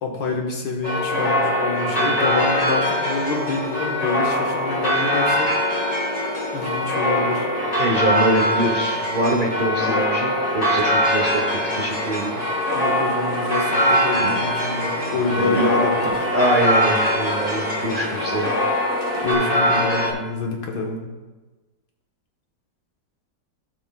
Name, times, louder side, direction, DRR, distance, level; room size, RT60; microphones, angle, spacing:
voice 1, 0.0-5.5 6.5-7.5 12.7-16.3 19.2-21.0, left 3 dB, 75° left, 1 dB, 1.9 m, -26 dB
sound 1, 0.8-20.1, equal, 30° left, 0.9 m, -22 dB
voice 2, 7.7-12.4 14.2-14.5 15.4-15.6 16.1-18.6, right 1 dB, 40° right, -1 dB, 0.8 m, -24 dB
sound 2, 10.7-19.3, right 1 dB, 20° right, 2.1 m, -36 dB
16.0 x 6.0 x 2.3 m, 1.2 s
omnidirectional pair, 2.0 m